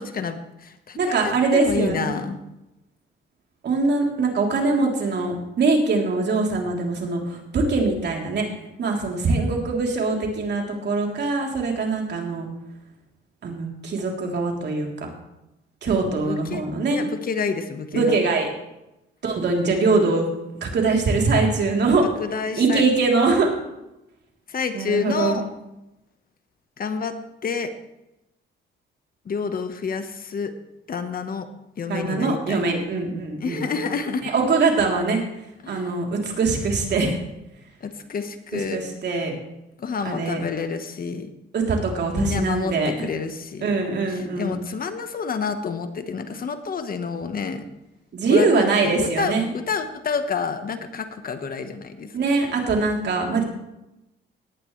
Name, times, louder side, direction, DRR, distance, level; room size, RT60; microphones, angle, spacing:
voice 1, 0.0-2.4 15.9-16.0 16.2-16.6 16.9-18.2 22.2-22.8 24.5-25.4 26.8-27.1 27.4-27.7 29.2-30.5 30.9-31.5 31.8-32.7 33.4-34.3 35.6-35.9 37.8-38.8 39.8-41.3 42.1-43.8 44.1-47.6 48.3-49.3 49.7-52.2, left 5 dB, 45° left, 8 dB, 1.3 m, -29 dB
voice 2, 1.0-2.1 3.6-8.5 8.8-12.5 13.4-15.1 15.8-17.0 17.9-18.5 19.2-20.3 20.6-22.1 22.6-23.5 24.7-25.4 31.9-33.6 34.2-35.2 35.7-37.2 38.5-39.4 40.0-40.4 41.5-43.0 43.6-44.6 48.1-49.5 52.1-53.4, right 3 dB, 60° right, 0 dB, 3.4 m, -22 dB
18.0 x 11.0 x 3.3 m, 0.91 s
cardioid pair, 90°, 20 cm